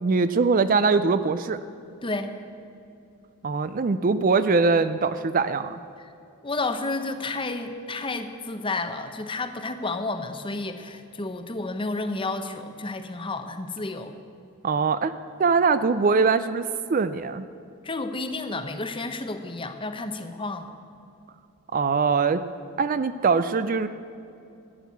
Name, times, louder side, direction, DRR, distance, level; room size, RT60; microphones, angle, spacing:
voice 1, 0.0-1.6 3.4-5.8 14.6-15.1 15.4-17.4 21.7-22.4 22.8-23.9, right 4 dB, 40° right, 13 dB, 0.4 m, -22 dB
voice 2, 2.0-2.3 6.4-14.1 17.8-20.7, left 2 dB, 25° left, 9 dB, 0.7 m, -31 dB
13.5 x 9.2 x 8.3 m, 2.6 s
head